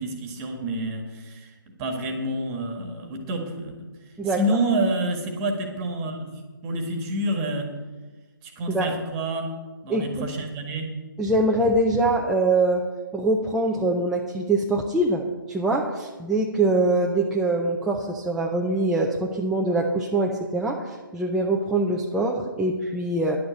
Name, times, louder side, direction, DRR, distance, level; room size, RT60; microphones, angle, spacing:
voice 1, 0.0-1.5 1.8-3.7 4.2-6.3 6.6-7.7 8.4-9.5 9.8-10.9, right 1 dB, 20° right, 4 dB, 1.7 m, -28 dB
voice 2, 4.2-4.6 8.7-8.9 9.9-10.3 11.2-12.9 13.1-23.4, right 2 dB, 5° right, -2 dB, 0.5 m, -23 dB
10.5 x 7.9 x 8.0 m, 1.3 s
figure-of-eight pair, 140°, 12 cm